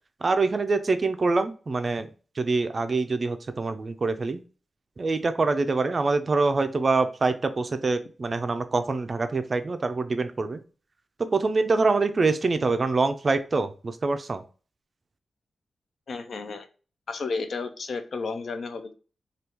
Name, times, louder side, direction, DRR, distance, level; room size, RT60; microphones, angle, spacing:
voice 1, 0.2-2.1 2.4-4.4 5.0-10.6 11.2-14.4, right 3 dB, 40° right, 9 dB, 0.3 m, -25 dB
voice 2, 16.1-16.7 17.1-18.9, left 4 dB, 65° left, 9 dB, 0.4 m, -32 dB
2.9 x 2.3 x 3.4 m, 0.36 s
wide cardioid pair, 125°, 0 cm